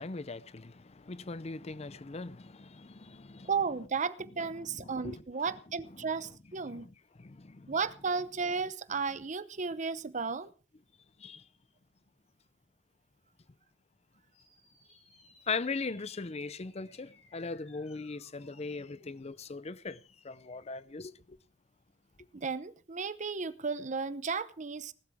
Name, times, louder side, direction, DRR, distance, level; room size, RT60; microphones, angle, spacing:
voice 1, 0.0-3.5 4.6-5.2 6.6-6.9 7.2-7.7 11.2-11.4 15.5-21.4, left 4 dB, 35° left, 0.6 m, -40 dB
voice 2, 3.4-6.9 7.7-10.5 22.3-24.9, right 5 dB, 40° right, 0.7 m, -34 dB
sound 1, 14.3-19.3, left 2 dB, 65° left, 7.1 m, -63 dB
18.5 x 12.5 x 3.6 m
head